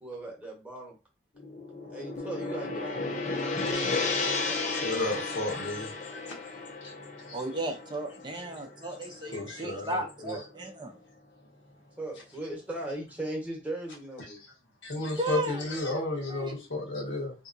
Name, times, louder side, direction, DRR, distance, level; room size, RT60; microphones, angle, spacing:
voice 1, 0.0-1.0 1.9-5.5 6.1-6.2 12.0-14.4, right 1 dB, 10° right, 1.0 m, -39 dB
Gong, 1.4-9.7, left 3 dB, 40° left, 0.6 m, -33 dB
voice 2, 4.7-6.2 6.8-6.9 7.3-7.4 9.3-10.4 14.8-17.3, left 2 dB, 85° left, 1.2 m, -33 dB
voice 3, 7.3-11.0 15.2-16.0 16.3-16.6, right 2 dB, 25° right, 0.5 m, -35 dB
3.4 x 2.8 x 2.6 m
head